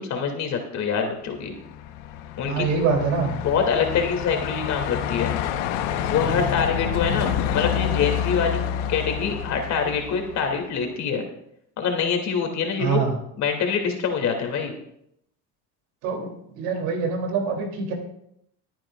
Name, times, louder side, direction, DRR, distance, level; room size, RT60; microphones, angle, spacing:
voice 1, 0.0-1.5 2.4-2.7 3.4-5.3 6.1-11.3 11.8-13.0 13.4-14.7, left 6 dB, 50° left, 3 dB, 2.7 m, -25 dB
Truck, 1.5-10.9, left 9 dB, 85° left, 1.1 m, -28 dB
voice 2, 2.5-3.4 12.8-13.1 16.0-17.9, right 5 dB, 80° right, 2 dB, 3.2 m, -25 dB
22.5 x 9.0 x 2.5 m, 0.76 s
supercardioid pair, 110°, 35 cm